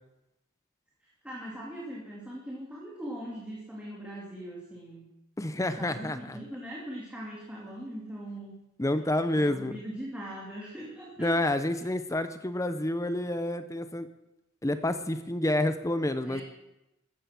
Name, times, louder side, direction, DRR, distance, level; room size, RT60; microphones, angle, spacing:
voice 1, 1.0-5.1 5.5-8.5 9.3-11.3 16.2-16.4, right 1 dB, 5° right, -4 dB, 2.8 m, -41 dB
voice 2, 5.4-6.4 8.8-9.7 11.2-14.1 14.6-16.4, left 1 dB, 15° left, 11 dB, 0.7 m, -29 dB
15.5 x 14.0 x 6.0 m, 0.90 s
head